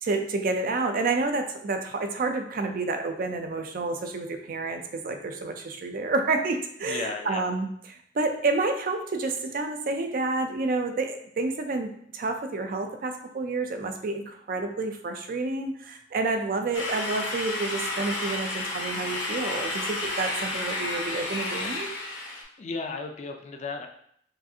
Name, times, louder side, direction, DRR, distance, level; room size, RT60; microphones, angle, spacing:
voice 1, 0.0-21.9, right 3 dB, 50° right, 6 dB, 0.4 m, -29 dB
voice 2, 6.8-7.5 22.6-23.9, left 4 dB, 40° left, 4 dB, 0.4 m, -34 dB
sound 1, 16.7-22.4, left 2 dB, 80° left, 0.9 m, -31 dB
4.8 x 2.4 x 2.7 m, 0.67 s
head